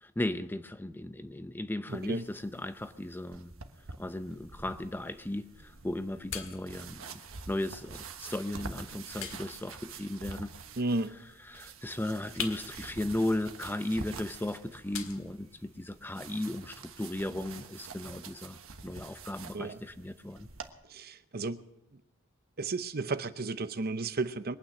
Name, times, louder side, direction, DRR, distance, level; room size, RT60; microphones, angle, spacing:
voice 1, 0.0-3.5 4.0-7.2 7.5-10.5 11.5-18.6 18.8-20.5, left 1 dB, 10° left, 0.5 m, -36 dB
voice 2, 1.9-2.3 10.8-11.1 19.5-19.8 20.9-21.6 22.6-24.6, right 3 dB, 45° right, 0.7 m, -33 dB
sound 1, 1.9-20.7, right 4 dB, 75° right, 1.3 m, -47 dB
sound 2, 4.0-16.0, left 7 dB, 75° left, 1.8 m, -47 dB
22.5 x 9.2 x 6.5 m
head